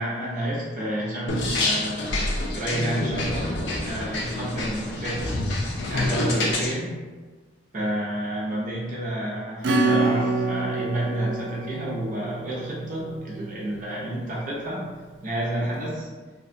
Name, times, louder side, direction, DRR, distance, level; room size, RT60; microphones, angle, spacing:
voice 1, 0.0-2.2 2.5-5.3 5.9-6.9 7.7-14.8 15.2-16.1, right 1 dB, 45° right, -5 dB, 0.6 m, -30 dB
sound 1, 1.3-6.7, left 2 dB, 75° left, 0.5 m, -27 dB
Acoustic guitar / Strum, 9.6-13.9, right 3 dB, 90° right, 0.4 m, -27 dB
2.8 x 2.2 x 2.6 m, 1.4 s
head